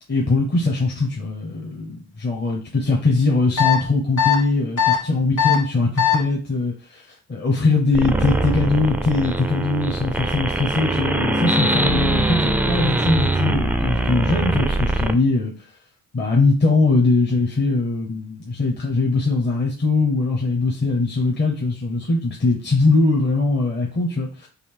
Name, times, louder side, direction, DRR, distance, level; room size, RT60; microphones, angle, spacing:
voice 1, 0.1-15.5 16.1-24.5, left 3 dB, 35° left, -2 dB, 0.9 m, -21 dB
sound 1, 3.6-3.8 4.2-4.3 4.8-5.0 5.4-5.5 6.0-6.1, left 10 dB, 70° left, 1.7 m, -17 dB
sound 2, 7.9-15.1, right 2 dB, 5° right, 0.4 m, -22 dB
4.0 x 2.6 x 3.4 m, 0.38 s
cardioid pair, 90°, 30 cm